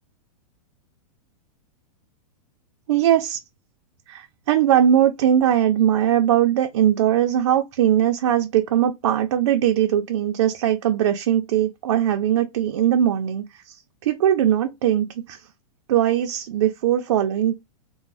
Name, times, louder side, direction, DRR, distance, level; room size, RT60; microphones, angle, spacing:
voice 1, 2.9-3.4 4.1-15.5 15.9-17.5, right 10 dB, 50° right, 0.4 m, -20 dB
3.0 x 2.0 x 2.4 m
supercardioid pair, 175°, 19 cm